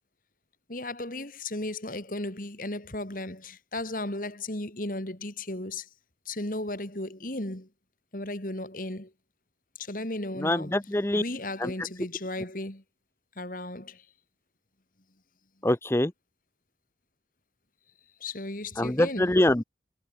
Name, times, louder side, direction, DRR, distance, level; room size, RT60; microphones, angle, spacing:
voice 1, 0.7-5.9 6.2-7.7 8.1-9.1 9.8-12.8 13.4-14.1 18.2-19.4, left 2 dB, 50° left, 3.0 m, -35 dB
voice 2, 10.4-11.2 11.6-11.7 15.6-16.1 18.8-19.6, left 1 dB, 15° left, 0.7 m, -24 dB
head